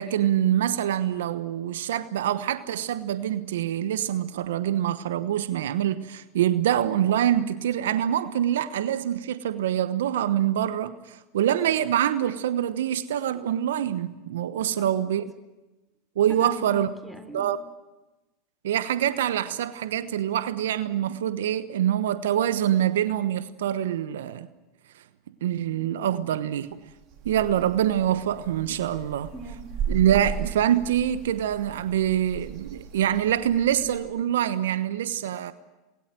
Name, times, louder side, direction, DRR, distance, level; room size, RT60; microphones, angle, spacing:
voice 1, 0.0-15.3 16.2-16.9 17.3-17.6 18.6-24.5 25.4-26.8 27.2-29.3 29.9-35.5, right 11 dB, 75° right, 1.0 m, -25 dB
voice 2, 14.6-14.9 16.3-17.5 29.3-29.7, equal, ahead, 3.9 m, -41 dB
sound 1, 26.7-34.0, right 7 dB, 50° right, 4.9 m, -37 dB
28.0 x 20.5 x 7.7 m
hypercardioid pair, 85°, 0 cm